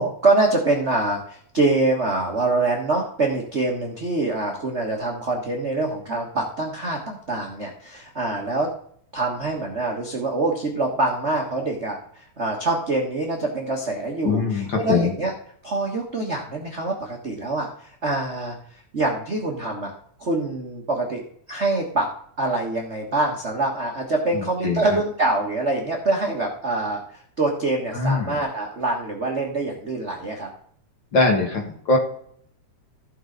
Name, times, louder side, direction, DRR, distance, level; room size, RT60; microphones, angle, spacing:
voice 1, 0.0-8.7 9.1-15.3 15.6-18.5 18.9-19.9 20.2-21.2 21.5-22.1 22.4-30.5, right 2 dB, 50° right, 0 dB, 0.8 m, -25 dB
voice 2, 14.2-15.1 24.6-24.8 27.9-28.4 31.1-32.0, left 3 dB, 45° left, 1 dB, 2.0 m, -21 dB
15.0 x 5.5 x 3.9 m, 0.62 s
omnidirectional pair, 3.4 m